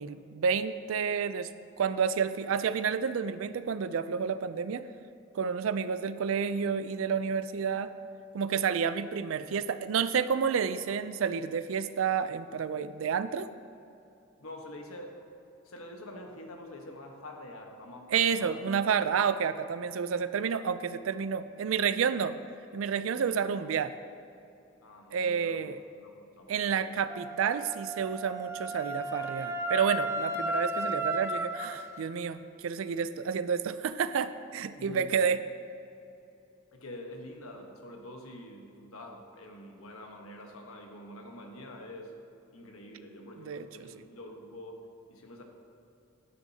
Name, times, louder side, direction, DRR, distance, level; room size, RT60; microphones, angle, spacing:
voice 1, 0.0-1.5 1.8-4.9 5.3-7.9 8.3-13.5 18.1-22.4 22.7-24.0 25.1-25.8 26.5-35.4 43.4-43.9, right 6 dB, 70° right, 13 dB, 0.4 m, -30 dB
voice 2, 14.4-15.2 15.6-18.6 24.8-25.6 25.9-27.0 34.8-35.1 36.7-42.1 42.5-45.4, left 1 dB, 85° left, 2 dB, 1.2 m, -46 dB
Wind instrument woodwind instrument, 27.1-31.8, right 1 dB, 10° right, 0.5 m, -34 dB
10.0 x 9.8 x 2.8 m, 2.8 s
head